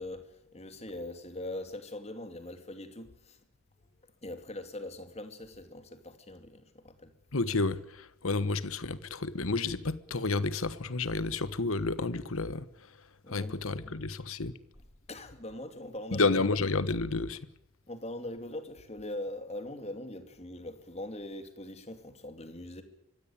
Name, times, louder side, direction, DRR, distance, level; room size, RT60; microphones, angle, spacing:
voice 1, 0.0-3.4 4.2-7.1 13.2-14.0 15.1-16.3 17.9-22.8, left 1 dB, 30° left, 2.7 m, -42 dB
voice 2, 7.3-12.6 13.3-14.5 16.1-17.4, left 3 dB, 70° left, 1.3 m, -30 dB
24.5 x 16.0 x 8.9 m
head